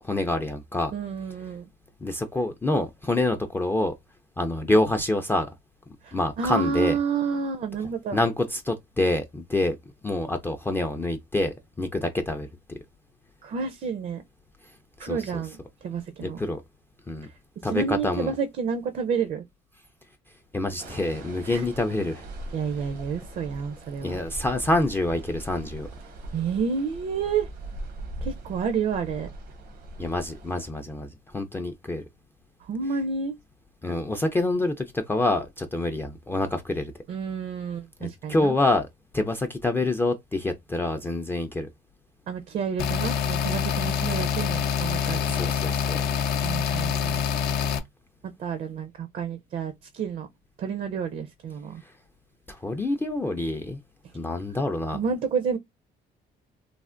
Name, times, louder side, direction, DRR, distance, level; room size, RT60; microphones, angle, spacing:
voice 1, 0.0-0.9 2.0-3.9 4.4-5.5 6.1-7.0 8.1-9.8 10.0-12.5 15.0-15.4 16.2-16.6 17.1-17.3 17.6-18.3 20.5-22.3 24.0-25.9 30.0-32.0 33.8-36.9 38.0-38.9 39.1-41.7 45.0-46.0 52.5-53.8 54.1-55.0, left 2 dB, 15° left, 0.3 m, -26 dB
voice 2, 0.9-1.7 6.0-8.2 13.4-14.2 15.0-15.6 15.8-16.4 17.7-19.4 21.5-21.6 22.5-24.2 26.3-27.5 28.2-29.3 32.7-33.3 37.1-38.5 42.3-45.5 46.4-47.2 48.2-50.3 50.6-51.8 54.9-55.6, right 6 dB, 50° right, 0.4 m, -30 dB
sound 1, 20.8-30.7, right 2 dB, 85° right, 0.8 m, -41 dB
sound 2, 42.8-47.8, left 7 dB, 75° left, 0.5 m, -26 dB
3.2 x 2.1 x 2.4 m
cardioid pair, 110°, 17 cm